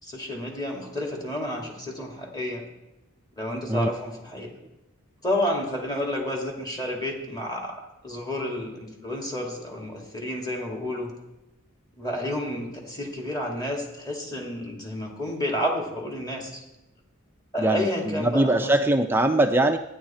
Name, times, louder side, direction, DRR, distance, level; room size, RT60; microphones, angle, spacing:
voice 1, 0.0-2.6 3.4-4.5 5.2-11.1 12.0-16.6 17.5-18.7, left 1 dB, 20° left, 0 dB, 2.5 m, -30 dB
voice 2, 17.6-19.8, right 1 dB, 10° right, 6 dB, 0.4 m, -22 dB
14.5 x 10.5 x 4.4 m, 0.99 s
head